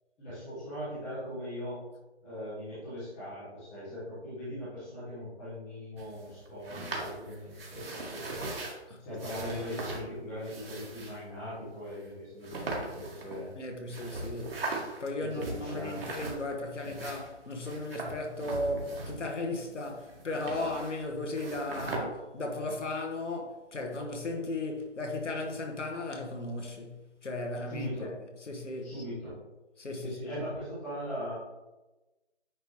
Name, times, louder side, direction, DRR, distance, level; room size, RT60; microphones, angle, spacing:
voice 1, 0.2-1.8 2.2-8.5 9.0-13.5 15.2-16.0 27.7-28.1 28.8-29.4 29.9-31.3, equal, 5° left, 1.0 m, -40 dB
sound 1, 6.0-8.8 9.2-10.0 10.4-11.2 11.9-12.0 12.4-13.6 13.9-15.0 15.3-16.5 16.8-19.4 19.7-21.0 21.3-22.0, right 2 dB, 55° right, 1.8 m, -39 dB
voice 2, 13.6-14.6 15.0-28.2 28.5-28.9 29.8-30.4, left 2 dB, 85° left, 1.6 m, -36 dB
9.5 x 3.6 x 3.2 m
hypercardioid pair, 170°, 35 cm